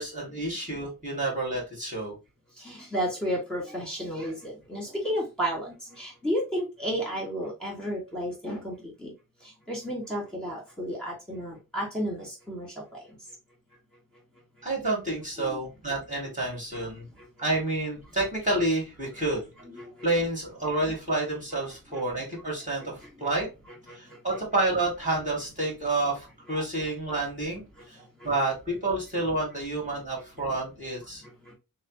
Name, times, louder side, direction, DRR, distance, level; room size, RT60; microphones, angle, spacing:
voice 1, 0.0-2.1 14.6-17.0 17.4-19.5 20.0-23.5 23.9-28.0 28.2-31.2, right 2 dB, 20° right, 2.5 m, -29 dB
voice 2, 2.6-8.7 9.0-9.1 9.7-12.7 15.4-15.5, equal, ahead, 2.5 m, -32 dB
6.3 x 2.1 x 3.1 m
wide cardioid pair, 80°, 36 cm